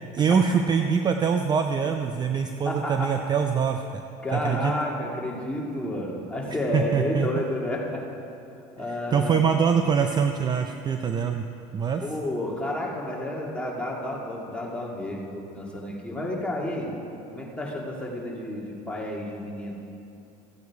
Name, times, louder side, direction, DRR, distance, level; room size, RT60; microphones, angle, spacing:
voice 1, 0.1-4.0 4.3-4.7 6.7-7.3 9.1-11.5 11.7-12.0, right 6 dB, 25° right, 6 dB, 0.5 m, -24 dB
voice 2, 2.3-3.1 4.2-8.2 8.8-9.4 12.0-16.9 17.3-19.7, left 1 dB, 5° left, -3 dB, 2.1 m, -31 dB
14.5 x 8.3 x 4.7 m, 2.7 s
supercardioid pair, 120°, 17 cm